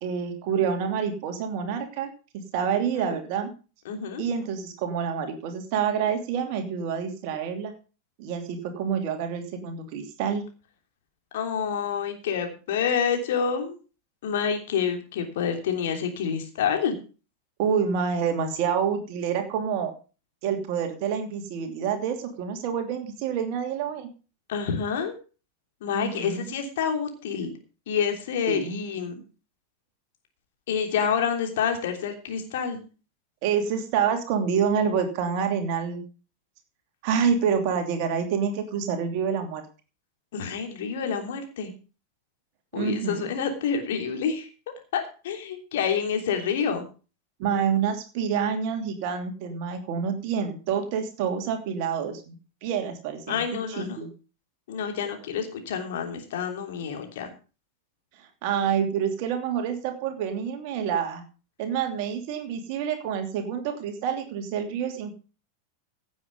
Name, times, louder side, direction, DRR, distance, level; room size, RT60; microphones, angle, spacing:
voice 1, 0.0-2.1 2.5-3.5 4.2-7.7 8.2-10.4 17.6-19.9 20.4-24.1 25.9-26.4 28.5-28.8 33.4-36.0 37.0-39.6 42.7-43.3 47.4-52.3 52.6-54.1 58.2-61.2 61.6-65.1, right 7 dB, 45° right, 6 dB, 2.8 m, -27 dB
voice 2, 3.8-4.2 11.3-13.8 14.2-16.9 24.5-25.1 25.8-27.5 27.9-29.2 30.7-32.8 40.3-41.7 42.7-44.5 44.9-46.8 53.3-54.0 54.7-57.3, left 7 dB, 55° left, 4 dB, 3.2 m, -28 dB
16.5 x 7.8 x 5.3 m, 0.35 s
figure-of-eight pair, 90°, 0 cm